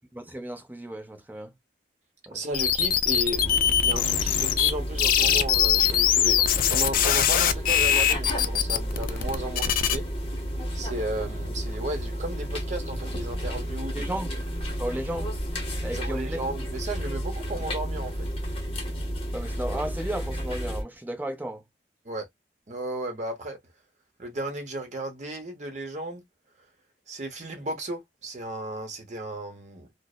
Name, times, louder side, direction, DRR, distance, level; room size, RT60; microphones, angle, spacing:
voice 1, 0.1-1.5 2.3-2.4 13.9-14.3 14.8-15.3 15.8-16.4 19.3-21.6, right 1 dB, 10° right, 0.7 m, -34 dB
voice 2, 2.3-10.1 10.7-14.1 15.9-18.3 22.0-22.3 22.7-23.6 24.2-26.2 27.1-29.9, right 1 dB, 40° right, 0.9 m, -34 dB
sound 1, 2.5-4.7 5.0-10.0, left 9 dB, 50° left, 0.3 m, -22 dB
sound 2, 3.3-20.8, equal, 30° left, 0.8 m, -32 dB
2.6 x 2.0 x 2.4 m
head